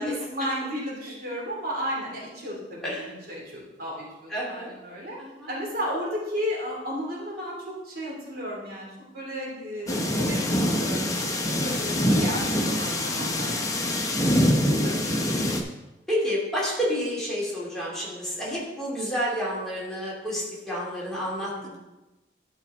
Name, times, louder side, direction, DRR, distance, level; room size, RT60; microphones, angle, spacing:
voice 1, 0.0-5.2 5.5-11.1 11.4-14.0 14.3-15.4 21.5-21.8, equal, 55° right, -4 dB, 2.9 m, -34 dB
voice 2, 2.8-3.1 4.3-4.7 5.2-5.5 11.6-12.0 16.1-21.5, equal, ahead, -8 dB, 2.8 m, -30 dB
sound 1, 9.9-15.6, left 1 dB, 20° left, 1.0 m, -24 dB
11.5 x 5.4 x 4.3 m, 1.0 s
head